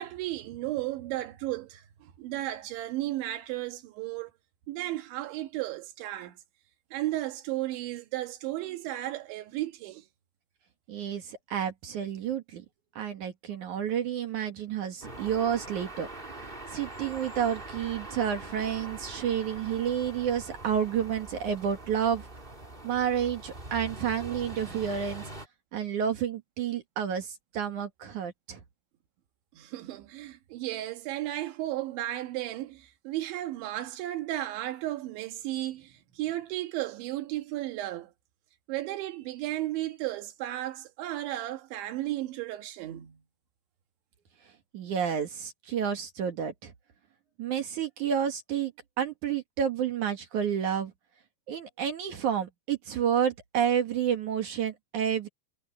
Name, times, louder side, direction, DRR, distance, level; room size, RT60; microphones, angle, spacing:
voice 1, 0.0-4.3 4.7-6.4 6.9-10.1 29.5-38.1 38.7-43.2, right 15 dB, 90° right, 3.9 m, -34 dB
voice 2, 10.9-12.6 13.0-16.1 16.4-22.3 22.8-25.2 25.7-28.6 44.7-46.7 47.4-48.7 49.0-50.9 51.5-55.3, right 8 dB, 55° right, 2.4 m, -30 dB
sound 1, 15.0-25.5, right 2 dB, 15° right, 2.7 m, -43 dB
omnidirectional pair, 5.1 m